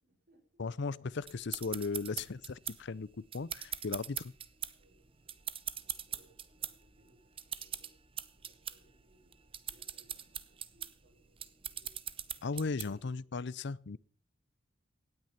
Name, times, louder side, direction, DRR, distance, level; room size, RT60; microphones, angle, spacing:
voice 1, 0.0-0.7 4.5-5.4 5.8-7.9 8.3-11.9 12.4-13.3, right 1 dB, 50° right, 2 dB, 6.5 m, -68 dB
voice 2, 0.6-4.3 12.4-14.0, left 4 dB, 65° left, 21 dB, 0.6 m, -37 dB
sound 1, 1.2-13.2, right 9 dB, 30° right, 0.8 m, -42 dB
17.0 x 9.5 x 5.8 m, 0.43 s
head